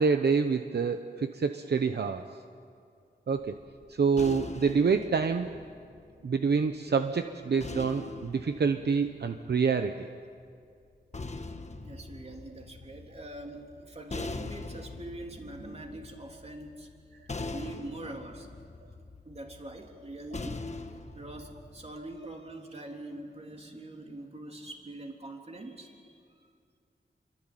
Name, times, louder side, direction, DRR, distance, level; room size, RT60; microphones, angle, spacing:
voice 1, 0.0-2.2 3.3-3.6 4.0-5.5 6.2-10.1, right 5 dB, 65° right, 7 dB, 0.9 m, -27 dB
sound 1, 3.4-6.7 7.6-9.9 10.8-21.9, left 3 dB, 40° left, 1.5 m, -42 dB
voice 2, 11.8-17.0 17.5-18.5 19.2-20.6 21.1-26.1, right 1 dB, 35° right, 2 dB, 3.5 m, -43 dB
27.5 x 24.0 x 9.1 m, 2.3 s
wide cardioid pair, 110°, 18 cm